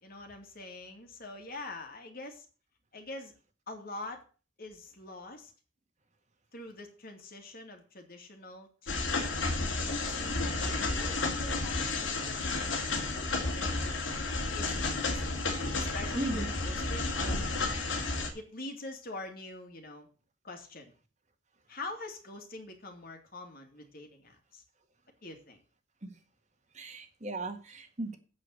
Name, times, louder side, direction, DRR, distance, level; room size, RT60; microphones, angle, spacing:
voice 1, 0.0-2.5 2.9-3.3 3.7-4.2 4.6-5.5 6.5-13.8 14.5-15.5 15.7-18.0 18.3-20.1 20.4-20.9 21.7-24.6 25.2-25.6, left 2 dB, 50° left, 4 dB, 2.5 m, -45 dB
sound 1, 8.9-18.3, left 3 dB, 90° left, 2.6 m, -32 dB
voice 2, 16.2-16.5 26.0-26.1 26.7-28.2, right 1 dB, 40° right, 6 dB, 1.8 m, -37 dB
8.3 x 7.5 x 7.7 m, 0.36 s
head